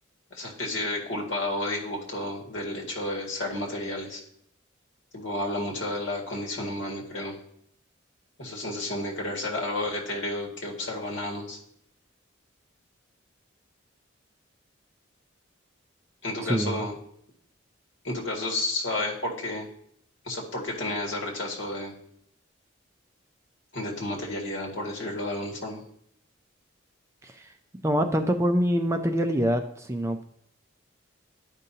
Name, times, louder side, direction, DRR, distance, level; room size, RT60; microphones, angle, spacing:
voice 1, 0.3-4.2 5.1-7.4 8.4-11.6 16.2-17.0 18.0-19.7 20.3-21.9 23.7-25.8, left 1 dB, 70° left, -1 dB, 1.9 m, -31 dB
voice 2, 16.4-16.9 27.2-27.5 27.8-30.2, equal, 15° right, 6 dB, 0.4 m, -25 dB
11.5 x 5.2 x 2.8 m, 0.68 s
head